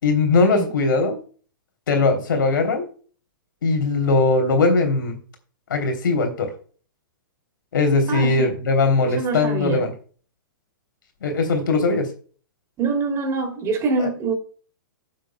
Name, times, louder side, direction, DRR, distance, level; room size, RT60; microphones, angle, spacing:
voice 1, 0.0-1.2 1.9-2.9 3.6-5.2 5.7-6.5 7.7-9.9 11.2-12.1 14.0-14.1, left 3 dB, 70° left, 3.0 m, -20 dB
voice 2, 8.1-8.5 9.0-9.8 12.8-14.3, right 4 dB, 25° right, 2.7 m, -24 dB
16.5 x 7.5 x 2.2 m
hypercardioid pair, 120°, 11 cm